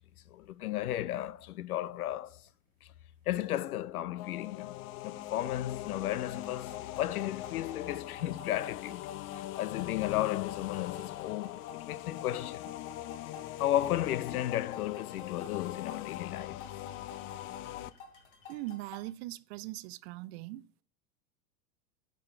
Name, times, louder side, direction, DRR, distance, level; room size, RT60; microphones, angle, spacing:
voice 1, 0.3-2.4 2.8-2.9 3.3-9.0 9.3-12.6 13.6-16.6, left 13 dB, 75° left, 0.6 m, -34 dB
sound 1, 4.2-17.9, left 14 dB, 30° left, 0.5 m, -42 dB
sound 2, 5.8-19.1, left 4 dB, 60° left, 3.1 m, -53 dB
voice 2, 18.5-20.8, right 17 dB, 45° right, 0.5 m, -41 dB
9.5 x 5.0 x 7.7 m
hypercardioid pair, 100°, 44 cm